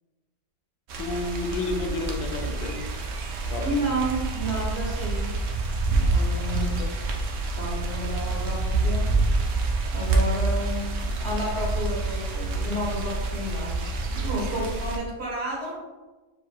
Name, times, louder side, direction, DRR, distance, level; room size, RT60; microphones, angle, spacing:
voice 1, 0.9-2.9 3.5-3.8 6.5-6.9, left 3 dB, 85° left, 3 dB, 1.4 m, -31 dB
sound 1, 0.9-15.0, right 3 dB, 75° right, 0.7 m, -27 dB
voice 2, 3.6-5.3 5.9-6.8 7.5-9.2 9.9-15.8, equal, 35° right, -6 dB, 1.6 m, -31 dB
4.9 x 4.4 x 2.3 m, 1.2 s
omnidirectional pair, 2.0 m